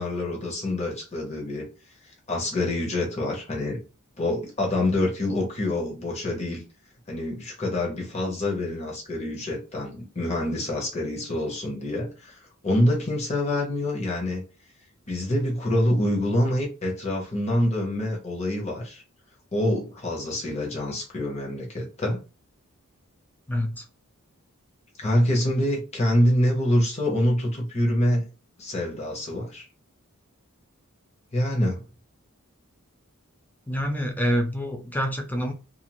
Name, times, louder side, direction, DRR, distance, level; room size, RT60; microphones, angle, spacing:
voice 1, 0.0-1.7 2.3-3.8 4.2-6.6 7.1-12.4 12.6-14.4 15.1-19.0 19.5-22.2 25.0-28.2 28.6-29.6 31.3-31.8, left 1 dB, 30° left, 0.9 m, -26 dB
voice 2, 33.7-35.5, equal, 10° left, 0.4 m, -26 dB
2.5 x 2.4 x 2.9 m
head